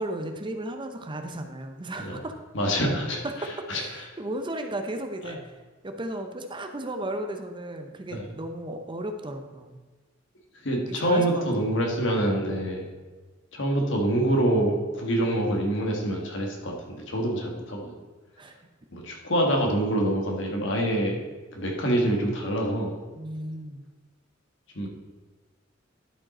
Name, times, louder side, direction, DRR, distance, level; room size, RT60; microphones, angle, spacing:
voice 1, 0.0-2.4 3.2-9.8 10.9-11.7 18.4-18.7 23.2-23.8, right 1 dB, 25° right, 5 dB, 0.7 m, -35 dB
voice 2, 2.5-3.8 5.2-5.3 8.1-8.2 10.5-12.9 13.5-17.9 18.9-21.2 21.5-23.0 24.7-24.9, right 1 dB, 70° left, 0 dB, 1.7 m, -26 dB
11.0 x 5.2 x 4.2 m, 1.3 s
head